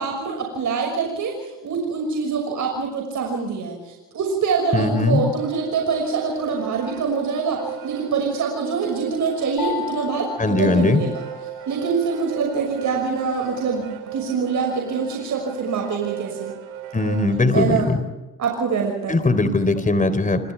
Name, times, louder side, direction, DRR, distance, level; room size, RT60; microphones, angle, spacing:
voice 1, 0.0-11.2 11.7-13.9 14.1-16.5 17.5-17.9 18.4-19.2, right 5 dB, 60° right, 1 dB, 6.2 m, -25 dB
voice 2, 4.7-5.2 10.4-11.0 16.9-18.0 19.1-20.5, left 3 dB, 25° left, 11 dB, 3.9 m, -19 dB
sound 1, 4.9-17.5, right 11 dB, 90° right, 4.2 m, -36 dB
sound 2, 9.6-11.7, left 10 dB, 70° left, 8.0 m, -33 dB
28.0 x 26.5 x 3.5 m, 1.1 s
cardioid pair, 85°, 35 cm